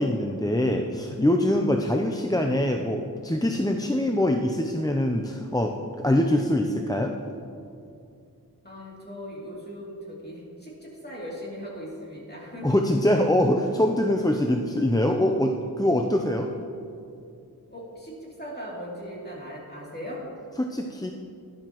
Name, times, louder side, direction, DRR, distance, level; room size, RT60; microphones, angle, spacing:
voice 1, 0.0-7.1 12.6-16.5 20.6-21.1, left 1 dB, 10° left, 2 dB, 0.5 m, -24 dB
voice 2, 8.6-12.8 17.7-20.2, equal, 25° left, -5 dB, 2.9 m, -39 dB
12.5 x 11.0 x 3.0 m, 2.5 s
wide cardioid pair, 40°, 37 cm